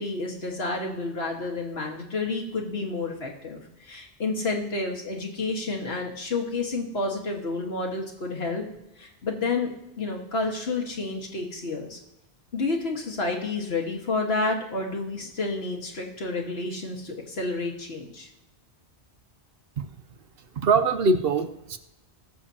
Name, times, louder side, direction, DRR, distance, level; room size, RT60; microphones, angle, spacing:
voice 1, 0.0-8.7 9.0-12.0 12.5-18.3, left 3 dB, 65° left, 1 dB, 1.9 m, -30 dB
voice 2, 20.6-21.8, right 4 dB, 60° right, 9 dB, 0.9 m, -23 dB
19.5 x 6.9 x 2.9 m, 0.87 s
omnidirectional pair, 1.1 m